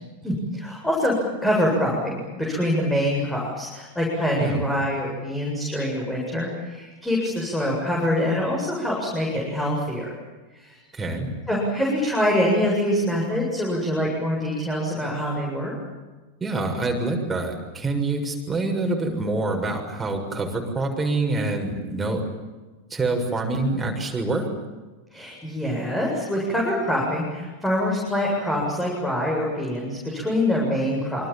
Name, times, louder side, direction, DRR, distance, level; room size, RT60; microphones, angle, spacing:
voice 1, 0.2-1.1 1.4-10.1 10.5-10.8 11.5-15.7 25.1-31.3, left 1 dB, 5° left, -2 dB, 7.9 m, -25 dB
voice 2, 10.9-11.3 16.4-22.2 22.9-24.5, right 2 dB, 10° right, 1 dB, 7.0 m, -26 dB
27.5 x 26.0 x 7.6 m, 1.3 s
figure-of-eight pair, 90°, 0 cm